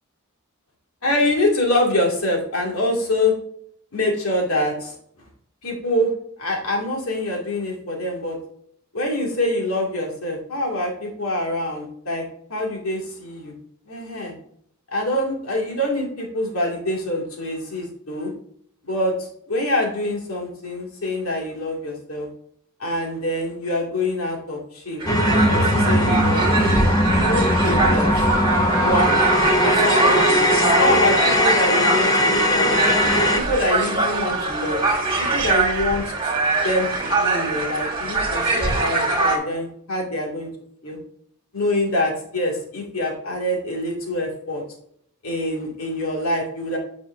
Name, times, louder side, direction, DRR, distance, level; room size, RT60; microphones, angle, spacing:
voice 1, 1.0-3.4 3.9-4.9 5.6-6.1 6.4-8.4 8.9-12.2 12.5-13.5 13.9-14.3 14.9-18.3 18.8-22.3 22.8-25.0 25.5-28.1 28.8-29.2 29.6-30.4 30.8-33.1 33.5-34.8 35.3-36.3 36.6-40.5 40.8-41.0 41.5-44.6 45.2-46.8, left 1 dB, 75° left, -1 dB, 2.3 m, -25 dB
sound 1, 25.0-39.4, right 3 dB, 25° right, 2.0 m, -23 dB
sound 2, 25.1-33.4, left 1 dB, 15° left, 0.6 m, -19 dB
8.3 x 6.2 x 2.6 m, 0.65 s
head